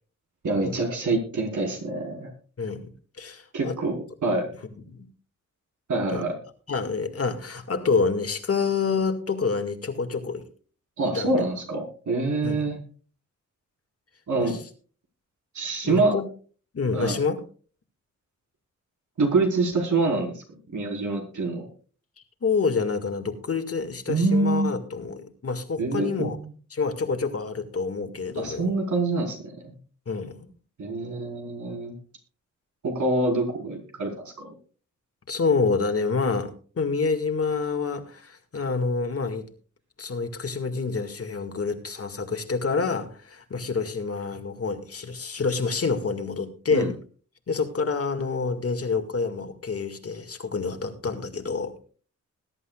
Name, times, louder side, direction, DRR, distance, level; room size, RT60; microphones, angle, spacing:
voice 1, 0.4-2.3 3.5-4.5 5.9-6.4 11.0-12.8 14.3-14.6 15.5-16.2 16.9-17.2 19.2-20.4 20.7-21.7 24.1-24.8 25.8-26.5 28.4-29.8 30.8-31.9 32.8-34.5 46.7-46.9, right 2 dB, 75° right, 1 dB, 4.6 m, -26 dB
voice 2, 2.6-2.9 3.2-3.7 4.9-5.1 6.1-6.2 6.7-10.5 11.1-11.3 12.4-12.7 14.4-14.6 15.8-16.3 16.7-17.4 22.4-26.4 26.7-28.7 30.1-30.5 35.3-39.5 40.0-47.0 47.5-51.7, left 4 dB, 50° left, 6 dB, 2.0 m, -27 dB
21.0 x 11.0 x 2.4 m, 0.40 s
wide cardioid pair, 100°, 30 cm